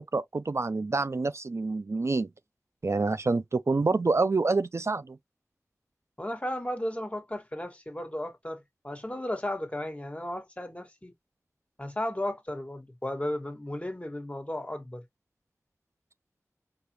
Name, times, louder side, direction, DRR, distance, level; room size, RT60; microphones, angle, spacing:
voice 1, 0.1-2.3 2.8-5.2, right 3 dB, 55° right, 0.4 m, -27 dB
voice 2, 6.2-11.1 11.8-15.0, left 1 dB, 25° left, 1.6 m, -34 dB
4.9 x 2.4 x 2.9 m
wide cardioid pair, 50°, 6 cm